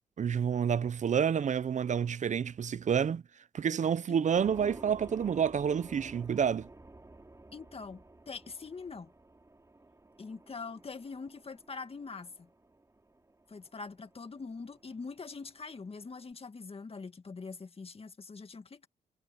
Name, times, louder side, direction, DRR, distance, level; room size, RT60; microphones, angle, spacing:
voice 1, 0.2-3.2 3.5-6.7, right 7 dB, 55° right, 0.7 m, -29 dB
sound 1, 4.4-16.3, right 2 dB, 20° right, 4.3 m, -53 dB
voice 2, 7.5-9.1 10.2-12.5 13.5-18.9, left 4 dB, 40° left, 2.0 m, -43 dB
cardioid pair, 65°, 15 cm